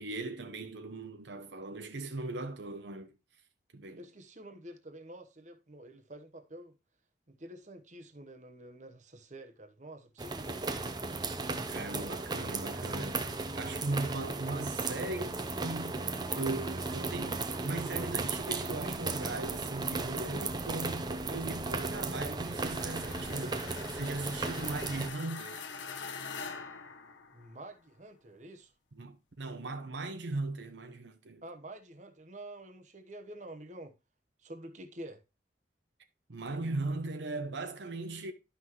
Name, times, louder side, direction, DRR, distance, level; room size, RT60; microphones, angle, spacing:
voice 1, 0.0-3.1 3.7-4.1 11.7-25.7 29.0-31.4 36.3-38.3, right 2 dB, 70° right, 0.8 m, -38 dB
voice 2, 4.0-6.8 7.3-10.6 27.3-28.7 31.4-33.9 34.4-35.2, right 1 dB, 40° right, 1.1 m, -48 dB
sound 1, 10.2-25.1, right 3 dB, 20° right, 0.7 m, -36 dB
sound 2, 22.5-27.7, left 5 dB, 90° left, 1.2 m, -44 dB
11.5 x 5.8 x 3.0 m
head